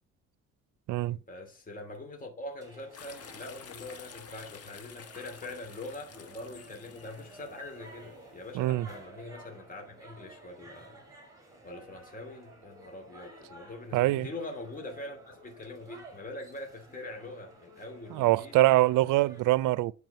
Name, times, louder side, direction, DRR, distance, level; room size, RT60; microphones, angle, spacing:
voice 1, 1.1-11.0 11.6-18.5, left 2 dB, 25° left, 2.6 m, -43 dB
sound 1, 2.6-19.4, right 2 dB, 10° right, 5.4 m, -53 dB
sound 2, 2.9-8.5, left 7 dB, 50° left, 1.3 m, -51 dB
voice 2, 8.5-8.9 13.9-14.3 18.1-19.9, right 17 dB, 85° right, 0.5 m, -24 dB
9.3 x 4.9 x 6.6 m
cardioid pair, 90°, 30 cm